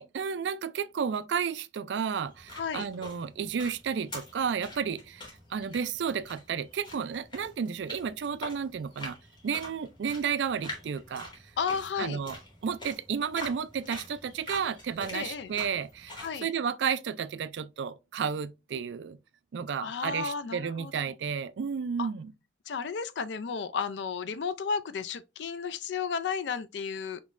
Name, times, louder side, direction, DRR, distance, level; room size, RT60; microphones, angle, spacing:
voice 1, 0.0-5.2 5.5-9.2 9.4-11.3 12.0-12.4 12.6-19.2 19.5-22.3, right 7 dB, 75° right, 0.4 m, -32 dB
sound 1, 2.2-16.4, left 1 dB, 25° left, 1.8 m, -46 dB
voice 2, 2.6-2.9 11.6-12.2 15.1-15.5 16.2-16.5 19.8-21.1 22.0-22.1 22.7-27.2, left 6 dB, 70° left, 0.4 m, -33 dB
5.2 x 3.1 x 2.4 m
head